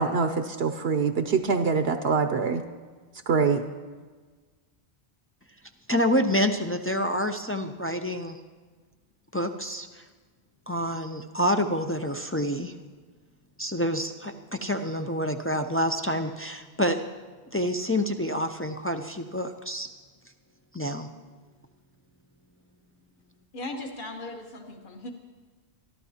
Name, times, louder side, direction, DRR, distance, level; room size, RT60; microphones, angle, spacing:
voice 1, 0.0-2.6 3.3-3.6, right 5 dB, 70° right, 8 dB, 0.9 m, -24 dB
voice 2, 5.9-8.4 9.3-10.0 10.7-12.7 13.6-17.0 17.5-19.9 20.7-21.1, equal, 20° left, 5 dB, 0.3 m, -27 dB
voice 3, 23.5-25.1, left 2 dB, 50° left, 3 dB, 1.5 m, -37 dB
24.5 x 12.5 x 2.9 m, 1.4 s
omnidirectional pair, 1.1 m